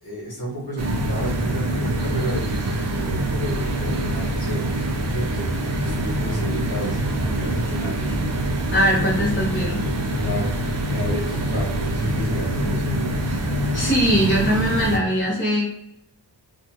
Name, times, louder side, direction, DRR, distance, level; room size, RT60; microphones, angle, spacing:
voice 1, 0.0-8.2 10.1-10.5 10.9-13.2, equal, 60° left, -4 dB, 1.2 m, -31 dB
sound 1, 0.8-15.0, right 1 dB, 40° right, 0.4 m, -25 dB
voice 2, 8.7-9.8 13.7-15.6, equal, 30° left, -5 dB, 0.9 m, -21 dB
2.8 x 2.3 x 2.9 m, 0.79 s
wide cardioid pair, 90°, 41 cm